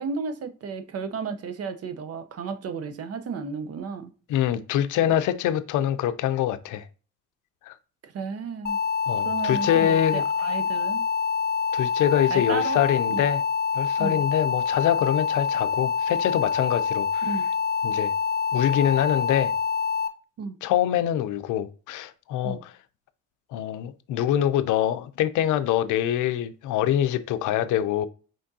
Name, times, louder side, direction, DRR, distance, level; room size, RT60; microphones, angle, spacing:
voice 1, 0.0-4.1 5.1-5.2 8.0-8.8 9.2-11.0 12.3-12.8 13.1-13.2 14.0-14.2 17.3-17.4 20.4-20.6 22.4-22.6, right 5 dB, 55° right, 0.7 m, -33 dB
voice 2, 4.3-6.9 7.7-7.8 9.1-10.2 11.7-13.4 13.7-17.3 17.8-18.1 18.5-19.5 20.6-22.7 23.5-28.1, left 11 dB, 80° left, 0.5 m, -24 dB
sound 1, 8.7-20.1, left 6 dB, 35° left, 0.6 m, -26 dB
5.1 x 3.5 x 2.6 m
cardioid pair, 90°, 30 cm